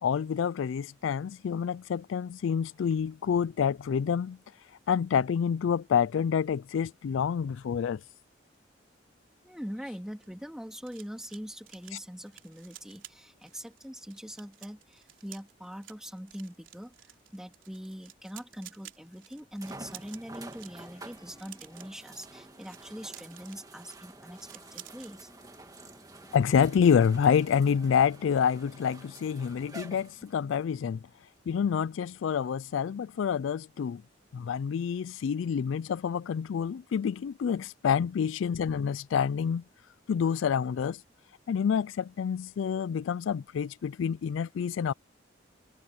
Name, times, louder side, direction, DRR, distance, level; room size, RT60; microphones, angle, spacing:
voice 1, 0.0-4.4 4.9-8.0 26.3-31.0 31.5-34.0 34.3-39.6 40.1-41.0 41.5-44.9, left 7 dB, 85° left, 0.3 m, -27 dB
voice 2, 9.4-25.3 37.6-37.7, equal, 5° right, 3.0 m, -43 dB
sound 1, 10.0-25.1 25.5-25.7 26.0-26.3, right 12 dB, 85° right, 3.7 m, -53 dB
sound 2, 18.5-18.6 19.6-30.6 31.4-31.5 34.9-35.0, right 2 dB, 20° right, 2.0 m, -49 dB
sound 3, 20.7-28.5, left 1 dB, 15° left, 4.8 m, -62 dB
head